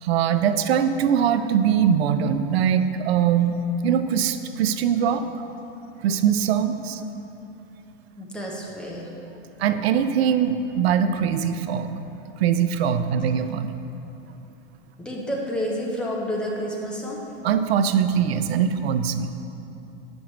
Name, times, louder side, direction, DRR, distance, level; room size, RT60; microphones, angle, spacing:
voice 1, 0.0-3.6 3.8-5.3 6.0-7.0 9.6-11.9 12.4-13.7 17.4-19.4, right 8 dB, 85° right, 10 dB, 0.5 m, -22 dB
voice 2, 8.2-9.1 15.0-17.2, equal, 5° left, -4 dB, 0.5 m, -29 dB
8.9 x 6.1 x 3.1 m, 2.9 s
supercardioid pair, 160°, 30 cm